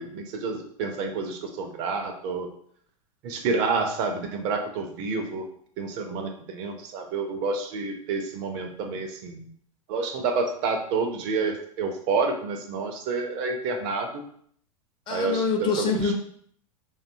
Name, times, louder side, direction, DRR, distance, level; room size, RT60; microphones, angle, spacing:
voice 1, 0.0-2.5 3.2-5.5 5.8-9.5 9.9-14.2 15.1-15.4 15.8-15.9, right 4 dB, 40° right, 4 dB, 0.4 m, -29 dB
voice 2, 15.1-16.1, left 5 dB, 25° left, 1 dB, 0.4 m, -25 dB
2.5 x 2.2 x 2.5 m, 0.63 s
figure-of-eight pair, 90°, 18 cm